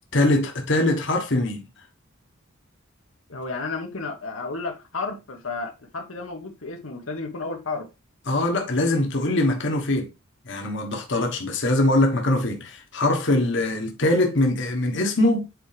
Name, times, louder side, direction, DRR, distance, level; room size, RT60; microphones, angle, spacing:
voice 1, 0.1-1.6 8.3-10.1 10.4-15.5, left 1 dB, 60° left, 1.4 m, -22 dB
voice 2, 3.3-7.9, left 3 dB, 85° left, 1.4 m, -32 dB
8.3 x 4.7 x 3.4 m
head